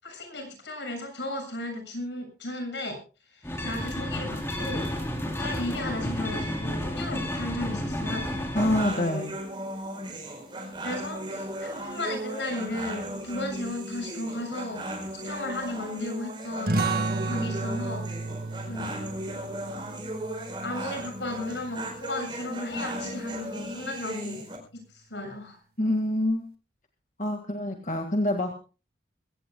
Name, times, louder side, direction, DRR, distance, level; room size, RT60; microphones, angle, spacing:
voice 1, 0.0-3.0 3.3-4.9 5.2-8.3 10.8-14.9 15.1-18.1 18.6-19.0 20.6-24.4 24.9-25.6, left 1 dB, 80° left, 5 dB, 7.1 m, -35 dB
sound 1, 3.4-8.9, equal, 15° left, 3.4 m, -31 dB
voice 2, 8.5-9.3 25.8-26.5 27.2-28.5, left 1 dB, 45° left, 4 dB, 1.9 m, -26 dB
sound 2, 8.6-24.6, right 1 dB, 25° right, 4.6 m, -36 dB
sound 3, 16.7-21.9, right 3 dB, 55° right, 1.9 m, -32 dB
22.5 x 17.0 x 2.3 m, 0.34 s
head